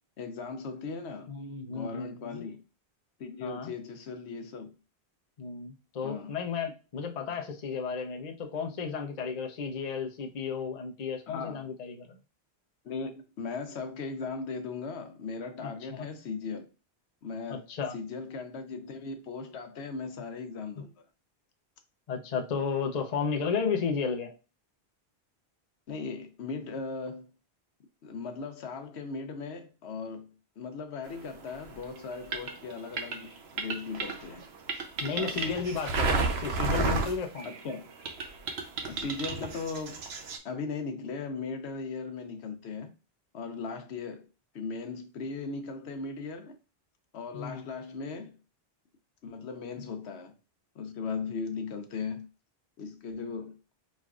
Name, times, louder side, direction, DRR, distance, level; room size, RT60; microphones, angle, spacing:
voice 1, 0.2-1.3 1.7-2.6 3.2-4.7 6.0-6.3 11.3-11.6 12.8-16.7 17.2-17.7 17.9-20.9 25.9-27.3 28.0-34.5 35.2-35.5 37.4-37.9 38.9-40.0 40.4-42.9 43.3-44.3 44.5-46.6 47.1-48.3 49.2-50.3 50.7-52.3 52.8-53.6, left 4 dB, 80° left, 1.0 m, -38 dB
voice 2, 1.3-2.4 3.4-3.7 5.4-12.2 15.6-16.1 17.5-18.0 22.1-24.3 35.0-37.5 47.3-47.6 49.8-49.9, left 5 dB, 45° left, 0.7 m, -33 dB
sound 1, 31.5-37.7 38.1-40.4, right 3 dB, 75° right, 1.0 m, -32 dB
5.1 x 3.1 x 2.4 m
omnidirectional pair, 1.1 m